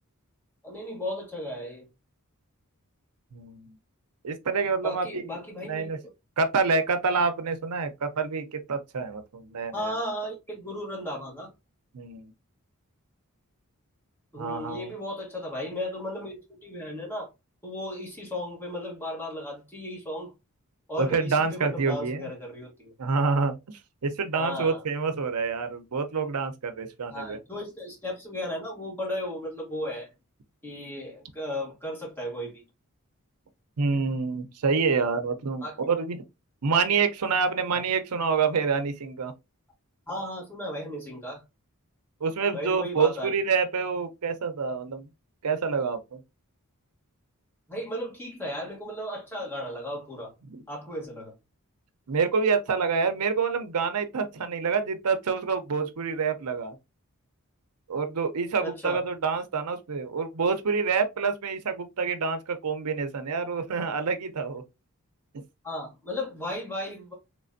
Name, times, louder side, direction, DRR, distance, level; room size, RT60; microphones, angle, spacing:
voice 1, 0.6-1.9 4.8-5.9 9.7-11.5 14.3-17.3 17.6-20.3 20.9-22.9 24.3-24.8 27.1-30.1 30.6-32.6 35.6-35.8 37.7-37.8 40.1-41.4 42.5-43.3 47.7-50.3 50.7-51.3 58.6-59.0 65.6-67.1, left 1 dB, 10° left, 1.6 m, -35 dB
voice 2, 3.3-3.7 4.2-6.0 6.4-10.0 11.9-12.3 14.4-14.9 21.0-22.3 23.0-23.6 24.0-27.4 33.8-36.2 36.6-39.3 42.2-45.1 45.4-46.2 50.5-50.6 52.1-56.8 57.9-64.6, right 5 dB, 90° right, 0.6 m, -27 dB
3.3 x 3.3 x 2.5 m
head